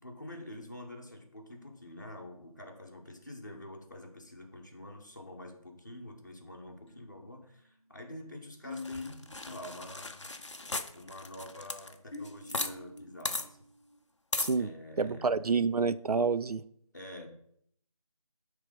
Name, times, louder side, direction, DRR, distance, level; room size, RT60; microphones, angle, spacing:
voice 1, 0.0-10.3 10.9-13.6 14.6-15.5 16.9-17.3, left 1 dB, 30° left, 0.8 m, -47 dB
sound 1, 6.9-9.8 10.2-10.6 12.1-14.0, left 3 dB, 5° left, 1.0 m, -48 dB
sound 2, 8.8-12.7 13.0-13.1 13.3-13.5 14.3-14.6, left 2 dB, 50° left, 0.5 m, -36 dB
voice 2, 15.0-16.6, right 4 dB, 75° right, 0.5 m, -28 dB
9.7 x 3.3 x 5.1 m
figure-of-eight pair, 175°, 19 cm